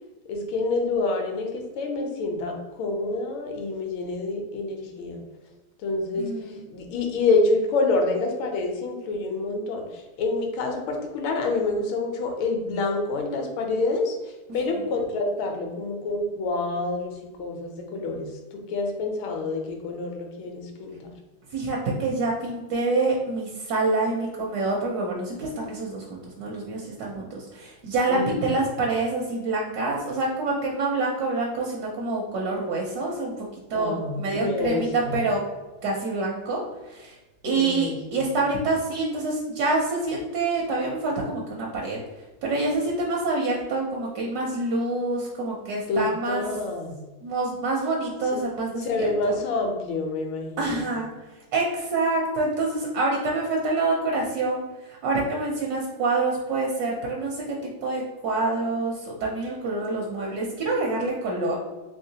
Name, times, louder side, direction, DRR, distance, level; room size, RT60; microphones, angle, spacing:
voice 1, 0.3-5.2 5.8-21.1 28.1-28.4 33.7-35.2 37.4-37.9 45.9-47.0 48.8-50.8, left 3 dB, 80° left, 2 dB, 1.5 m, -27 dB
voice 2, 6.2-6.6 14.6-14.7 21.5-35.4 35.8-37.2 37.4-42.0 42.4-46.4 47.2-49.4 50.6-51.1 51.5-61.6, right 3 dB, 70° right, -2 dB, 0.9 m, -27 dB
3.7 x 3.1 x 2.7 m, 1.1 s
omnidirectional pair, 2.3 m